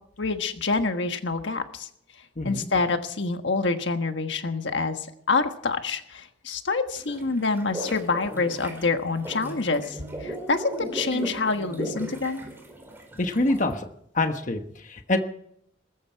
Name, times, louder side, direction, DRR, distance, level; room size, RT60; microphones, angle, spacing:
voice 1, 0.2-1.9 2.4-12.4, left 3 dB, 70° left, 7 dB, 1.4 m, -27 dB
voice 2, 2.4-2.7 13.2-13.9 14.1-15.2, left 2 dB, 40° left, 6 dB, 1.3 m, -26 dB
sound 1, 7.0-13.7, right 1 dB, 10° right, 4.6 m, -37 dB
20.5 x 14.5 x 4.6 m, 0.69 s
head